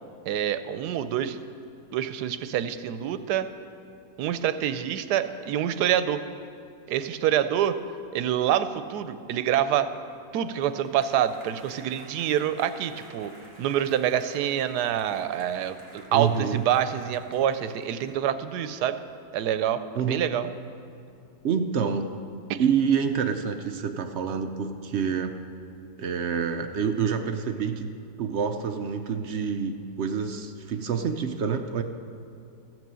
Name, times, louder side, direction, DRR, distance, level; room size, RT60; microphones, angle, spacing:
voice 1, 0.3-1.4 1.9-3.5 4.2-6.2 6.9-7.8 8.1-9.9 10.3-13.3 13.6-19.0 19.3-20.5 22.5-22.6, right 10 dB, 90° right, 11 dB, 1.2 m, -26 dB
sound 1, 10.3-18.2, right 1 dB, 45° right, 2.4 m, -50 dB
voice 2, 16.1-16.6 20.0-20.3 21.4-22.2 22.6-25.3 26.0-27.9 28.2-31.8, right 7 dB, 65° right, 6 dB, 0.7 m, -27 dB
15.0 x 6.2 x 7.5 m, 2.6 s
omnidirectional pair, 1.7 m